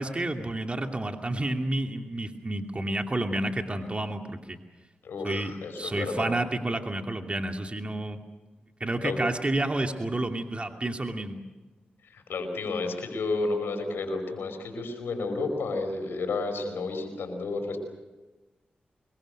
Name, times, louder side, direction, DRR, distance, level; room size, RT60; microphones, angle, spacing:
voice 1, 0.0-4.6 5.2-5.5 5.8-8.2 8.8-11.4, right 1 dB, 30° right, 4 dB, 2.7 m, -30 dB
voice 2, 5.0-6.3 9.0-9.2 12.0-17.8, left 3 dB, 85° left, 6 dB, 5.3 m, -31 dB
25.5 x 22.5 x 6.6 m, 1.2 s
cardioid pair, 45°, 4 cm